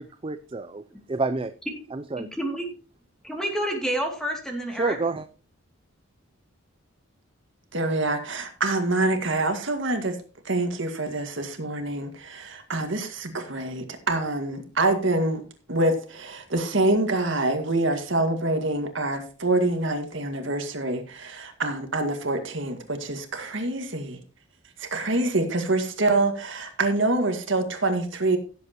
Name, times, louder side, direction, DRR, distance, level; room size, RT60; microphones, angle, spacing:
voice 1, 0.0-0.8 1.1-1.5 1.9-2.3 4.7-5.3, right 3 dB, 25° right, 0.4 m, -28 dB
voice 2, 2.2-2.7 3.2-5.0, right 1 dB, 5° left, 2.6 m, -29 dB
voice 3, 7.7-10.2 10.5-15.4 15.7-24.2 24.8-28.4, right 2 dB, 60° right, 2.0 m, -26 dB
16.5 x 7.9 x 3.0 m
head